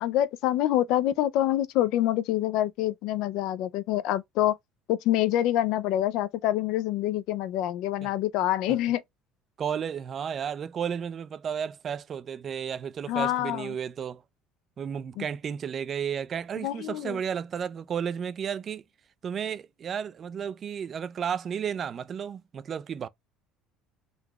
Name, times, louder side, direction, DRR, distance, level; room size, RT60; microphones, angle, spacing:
voice 1, 0.0-4.6 4.9-9.0 13.1-13.7 15.2-15.3 16.6-17.2, left 13 dB, 70° left, 0.3 m, -26 dB
voice 2, 9.6-14.2 14.8-18.8 19.2-23.1, right 8 dB, 35° right, 0.3 m, -33 dB
3.9 x 2.3 x 2.9 m
cardioid pair, 135°, 0 cm